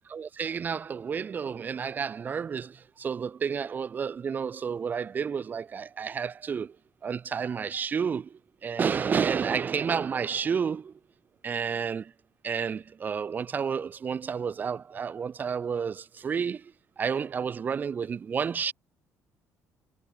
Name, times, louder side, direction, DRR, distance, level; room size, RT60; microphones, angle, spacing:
voice 1, 0.1-6.8 7.0-10.9 11.4-12.1 12.4-18.7, right 6 dB, 30° right, 2.6 m, -30 dB
cardioid pair, 150°, 6 cm